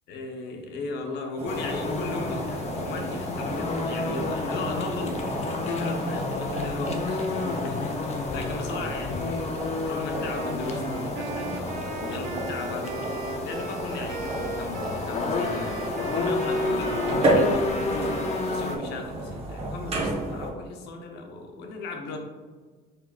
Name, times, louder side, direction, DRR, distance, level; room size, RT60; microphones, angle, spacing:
voice 1, 0.1-5.3 5.6-13.2 13.4-22.2, left 2 dB, 80° left, 3 dB, 0.8 m, -36 dB
sound 1, 1.4-20.5, right 1 dB, 35° right, 1.1 m, -32 dB
sound 2, 1.5-18.8, left 3 dB, 40° left, 0.6 m, -31 dB
Wind instrument woodwind instrument, 10.0-18.8, right 4 dB, 55° right, 0.6 m, -38 dB
5.2 x 4.0 x 2.4 m, 1.4 s
cardioid pair, 110°, 17 cm